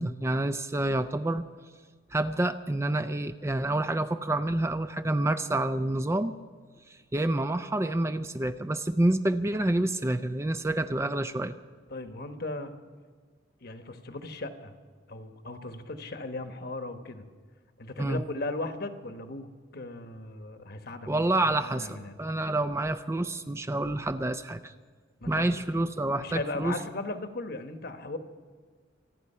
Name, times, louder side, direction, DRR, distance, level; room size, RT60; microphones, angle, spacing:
voice 1, 0.0-1.4 2.1-6.3 7.1-11.5 18.0-18.2 21.1-24.7 25.3-26.8, right 1 dB, 15° right, 10 dB, 0.4 m, -28 dB
voice 2, 11.9-12.8 13.6-14.7 15.1-17.3 17.8-22.2 25.2-25.6 26.2-28.2, left 2 dB, 55° left, 8 dB, 1.1 m, -37 dB
26.5 x 9.5 x 5.5 m, 1.5 s
head